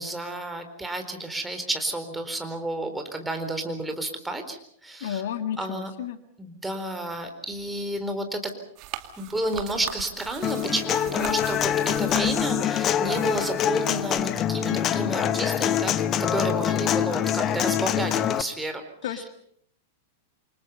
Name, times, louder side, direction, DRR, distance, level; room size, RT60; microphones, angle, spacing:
voice 1, 0.0-4.6 4.8-5.2 5.6-5.9 6.4-8.5 9.2-15.9 16.2-19.2, right 1 dB, 5° right, 5 dB, 4.1 m, -31 dB
voice 2, 5.0-6.2 19.0-19.3, left 9 dB, 55° left, 9 dB, 1.7 m, -32 dB
sound 1, 8.8-14.2, right 13 dB, 40° right, 2.3 m, -41 dB
Human voice / Acoustic guitar, 10.4-18.4, left 10 dB, 30° left, 1.1 m, -25 dB
28.5 x 25.0 x 5.6 m, 0.67 s
figure-of-eight pair, 95°, 0 cm